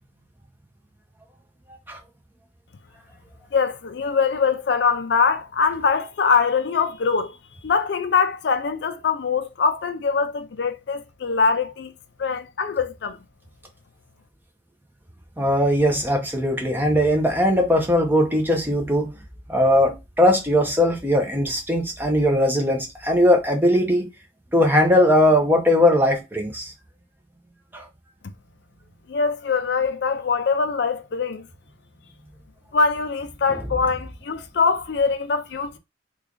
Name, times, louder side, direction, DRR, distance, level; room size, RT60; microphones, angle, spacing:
voice 1, 3.5-7.4 7.6-11.9 12.2-13.2 29.1-31.5 32.7-35.8, left 5 dB, 60° left, 0.4 m, -23 dB
voice 2, 15.4-19.1 19.5-24.1 24.5-26.7 27.7-27.9, left 1 dB, 10° right, 0.6 m, -19 dB
3.2 x 2.4 x 3.7 m
head